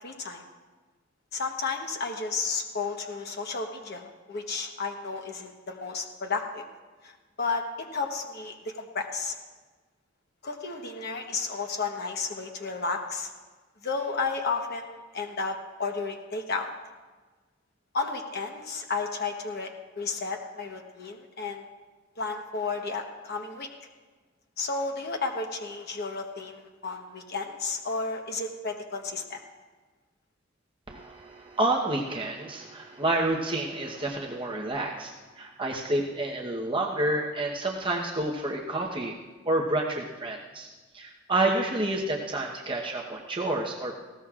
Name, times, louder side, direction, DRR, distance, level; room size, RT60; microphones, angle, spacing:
voice 1, 0.0-0.4 1.3-6.6 7.0-7.1 7.4-9.3 10.4-13.3 13.8-16.7 17.9-21.6 22.2-23.7 24.6-29.4, left 4 dB, 50° left, 3 dB, 1.1 m, -32 dB
voice 2, 30.9-39.1 39.4-40.7 40.9-44.0, right 2 dB, 25° right, -1 dB, 1.0 m, -29 dB
20.0 x 17.0 x 2.5 m, 1.3 s
head